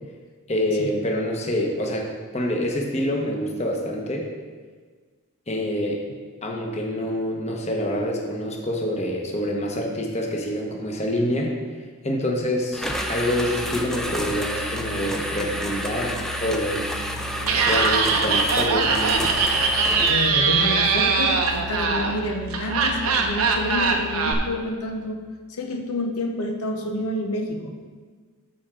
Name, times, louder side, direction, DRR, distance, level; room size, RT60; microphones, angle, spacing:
voice 1, 0.5-2.1 2.3-4.3 5.5-6.0 6.4-11.6 12.0-16.9 17.7-19.3, equal, 30° left, -1 dB, 1.1 m, -26 dB
sound 1, 12.7-20.3, equal, ahead, 0.5 m, -30 dB
Musical instrument, 12.8-24.9, right 1 dB, 45° right, 0.6 m, -38 dB
Laughter, 17.4-24.3, right 4 dB, 75° right, 0.8 m, -22 dB
voice 2, 20.1-25.2 25.5-27.8, left 1 dB, 80° left, 3 dB, 0.8 m, -28 dB
13.5 x 4.5 x 3.8 m, 1.5 s
head